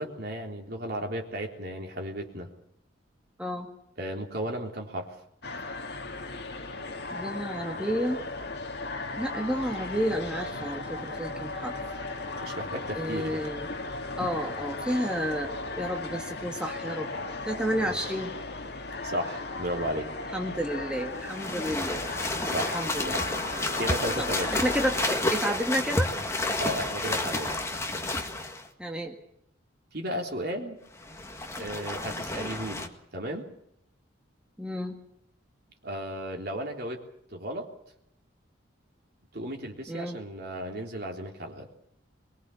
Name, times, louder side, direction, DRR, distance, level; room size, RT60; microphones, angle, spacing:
voice 1, 0.0-2.5 4.0-5.1 12.3-13.5 17.8-17.9 19.0-20.1 22.4-22.8 23.1-23.2 23.5-24.5 26.6-27.6 29.9-30.8 31.6-33.5 35.8-37.0 37.3-37.7 39.3-41.7, right 1 dB, 55° right, 2 dB, 3.7 m, -34 dB
voice 2, 3.4-3.7 7.1-8.2 9.2-11.8 13.0-13.7 14.2-17.1 17.5-18.3 20.3-22.1 22.7-23.2 24.2-26.1 28.8-29.1 34.6-35.0 39.9-40.2, equal, 5° right, 1 dB, 1.8 m, -31 dB
sound 1, 5.4-25.1, left 3 dB, 55° left, 2.2 m, -36 dB
sound 2, 21.2-28.7 30.9-32.9, left 2 dB, 15° left, 1.9 m, -30 dB
23.5 x 22.5 x 7.1 m, 0.74 s
head